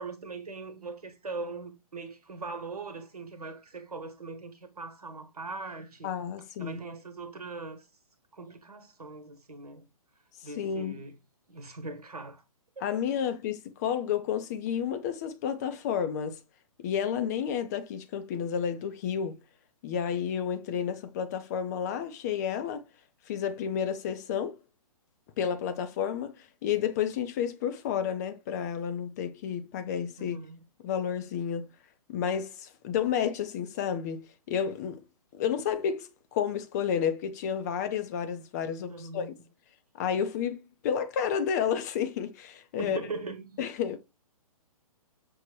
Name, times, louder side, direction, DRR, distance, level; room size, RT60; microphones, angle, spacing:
voice 1, 0.0-6.1 6.6-7.9 8.3-9.9 10.4-11.1 11.5-12.4 30.2-30.6 38.9-39.3 42.8-43.6, right 3 dB, 90° right, 1.1 m, -40 dB
voice 2, 6.0-6.8 10.6-11.0 12.8-16.4 16.8-19.4 19.8-22.9 23.3-24.6 25.4-30.4 30.8-31.7 32.1-35.0 35.3-39.4 40.0-40.6 40.8-43.0 43.6-44.0, left 8 dB, 30° left, 0.4 m, -31 dB
6.0 x 2.1 x 3.1 m
hypercardioid pair, 135°, 19 cm